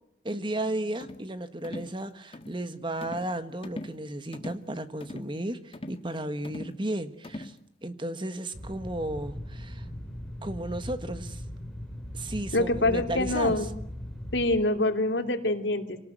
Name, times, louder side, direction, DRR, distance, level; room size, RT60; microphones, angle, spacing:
voice 1, 0.2-7.6 7.8-9.8 10.4-11.4 12.1-13.7, right 1 dB, 30° right, 11 dB, 1.5 m, -34 dB
sound 1, 1.0-1.3 1.6-1.9 2.3-2.6 3.0-3.3 3.6-4.0 4.3-4.6 5.0-5.3 5.7-6.1 6.4-6.8 7.2-7.6, left 1 dB, 30° left, 1.5 m, -41 dB
sound 2, 8.5-14.6, equal, 5° left, 3.9 m, -39 dB
voice 2, 12.5-13.7 14.3-16.0, left 2 dB, 85° left, 6 dB, 3.1 m, -25 dB
26.0 x 19.0 x 9.3 m, 0.77 s
head